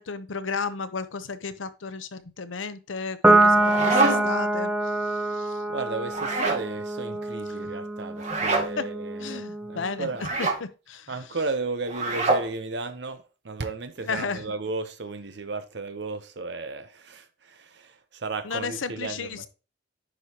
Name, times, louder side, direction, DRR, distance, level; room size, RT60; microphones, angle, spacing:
voice 1, 0.0-5.6 7.5-7.7 8.6-8.9 9.2-11.4 14.0-14.5 18.4-19.5, left 5 dB, 85° left, 0.8 m, -34 dB
Piano, 3.2-9.9, right 2 dB, 10° right, 0.9 m, -25 dB
sound 1, 3.4-4.4 6.1-6.7 8.2-8.7 10.2-10.6 11.9-12.5, right 3 dB, 35° right, 1.8 m, -25 dB
voice 2, 5.7-10.3 11.1-19.5, right 3 dB, 65° right, 0.8 m, -34 dB
9.9 x 5.1 x 2.8 m
head